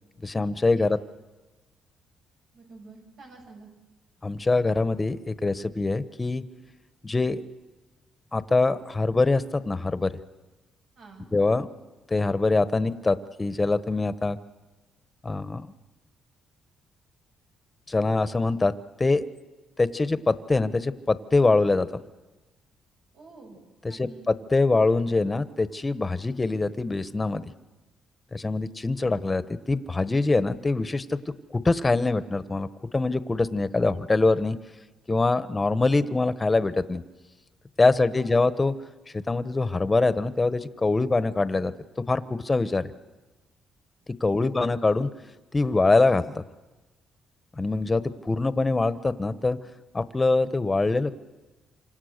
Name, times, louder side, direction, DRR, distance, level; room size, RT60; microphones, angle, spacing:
voice 1, 0.2-1.0 4.2-6.4 7.0-7.4 8.3-10.1 11.3-11.7 12.1-14.4 15.2-15.7 17.9-18.7 19.0-19.3 19.8-21.9 23.8-27.5 28.3-31.2 31.5-32.7 32.9-34.6 35.1-37.0 37.8-38.7 39.1-41.7 42.1-42.9 44.2-45.1 45.5-46.4 47.6-49.6 49.9-51.1, left 3 dB, 20° left, 13 dB, 1.1 m, -24 dB
voice 2, 2.5-3.7 11.0-11.3 23.1-23.6 23.9-24.3 37.9-38.3 44.2-44.7, right 3 dB, 80° right, -1 dB, 7.9 m, -48 dB
28.0 x 26.0 x 6.6 m, 1.2 s
cardioid pair, 90°, 0 cm